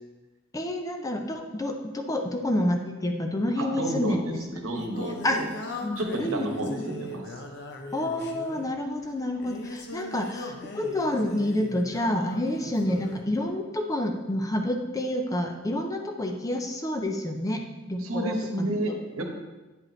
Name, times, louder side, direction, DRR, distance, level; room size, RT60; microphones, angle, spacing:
voice 1, 0.5-4.4 5.2-5.4 5.8-6.8 7.9-18.7, left 1 dB, 15° left, 4 dB, 0.5 m, -29 dB
voice 2, 3.6-5.5 6.0-7.4 18.0-19.2, right 1 dB, 80° right, 3 dB, 1.1 m, -31 dB
Singing, 4.2-13.3, left 1 dB, 55° left, 0.7 m, -40 dB
8.8 x 5.1 x 3.2 m, 1.1 s
head